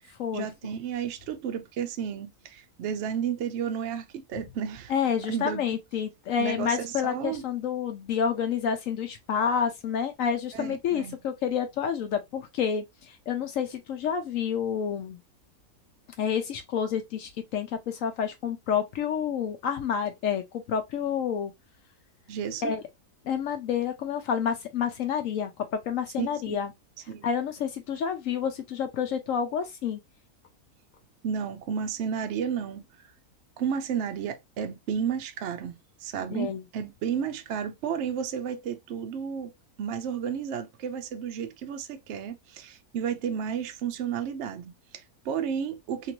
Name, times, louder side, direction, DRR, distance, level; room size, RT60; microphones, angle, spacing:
voice 1, 0.3-4.9 5.3-5.6 6.4-7.4 10.5-11.1 22.3-22.8 26.2-26.6 27.1-27.2 31.2-32.8 33.6-39.5 39.8-46.1, right 7 dB, 65° right, 0.7 m, -32 dB
voice 2, 4.9-15.2 16.2-21.5 22.6-22.8 23.2-26.7 27.2-30.0 36.3-36.6, left 7 dB, 70° left, 0.9 m, -29 dB
2.9 x 2.5 x 2.9 m
omnidirectional pair, 1.6 m